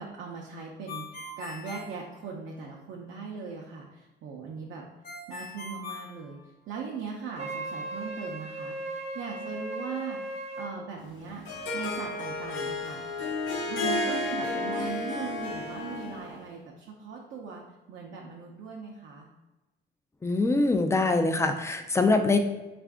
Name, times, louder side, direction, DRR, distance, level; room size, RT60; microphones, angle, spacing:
voice 1, 0.0-4.9 5.3-6.4 6.7-11.4 11.7-13.0 13.7-17.6 17.9-19.3, right 5 dB, 75° right, -1 dB, 0.6 m, -39 dB
Ringtone, 0.9-2.8 5.0-6.9, left 2 dB, 45° left, 0.7 m, -42 dB
Wind instrument woodwind instrument, 7.4-10.7, right 2 dB, 35° right, 0.6 m, -37 dB
Harp, 11.1-16.4, left 2 dB, 75° left, 0.8 m, -32 dB
voice 2, 20.2-22.4, left 3 dB, 15° left, 6 dB, 0.4 m, -23 dB
3.5 x 2.5 x 3.4 m, 1.1 s
cardioid pair, 90°, 20 cm